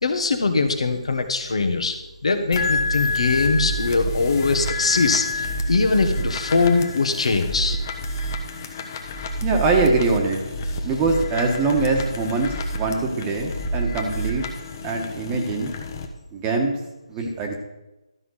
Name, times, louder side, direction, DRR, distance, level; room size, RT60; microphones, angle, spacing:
voice 1, 0.0-1.9 2.2-7.8, left 4 dB, 65° left, 7 dB, 1.6 m, -22 dB
sound 1, 2.5-16.1, left 1 dB, 35° left, 1.2 m, -28 dB
voice 2, 9.4-10.4 10.8-14.4 14.8-15.7 16.3-16.7 17.1-17.6, right 3 dB, 20° right, 2 dB, 1.4 m, -23 dB
13.0 x 5.7 x 6.5 m, 1.0 s
figure-of-eight pair, 155°, 3 cm